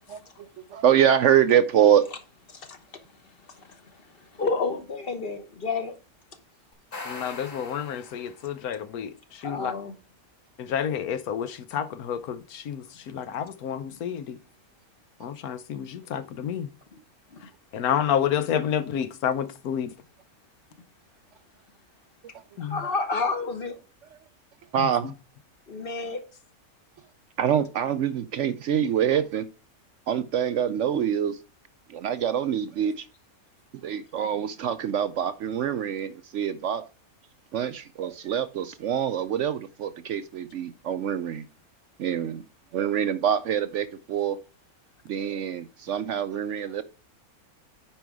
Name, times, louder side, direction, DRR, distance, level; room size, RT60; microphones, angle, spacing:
voice 1, 0.1-2.1 24.7-25.1 27.4-29.5 30.1-31.4 31.9-33.1 33.8-36.8 37.5-41.4 42.0-42.4 42.7-44.4 45.1-46.8, right 9 dB, 65° right, 0.8 m, -25 dB
voice 2, 4.4-6.0 9.4-9.9 22.6-23.8 25.7-26.2, left 4 dB, 40° left, 1.2 m, -29 dB
sound 1, 6.7-8.7, left 3 dB, 60° left, 3.1 m, -41 dB
voice 3, 7.1-9.7 10.6-14.4 15.2-16.7 17.7-19.9 22.6-22.8 24.8-24.9, left 9 dB, 80° left, 1.2 m, -29 dB
8.8 x 5.3 x 4.7 m
omnidirectional pair, 1.6 m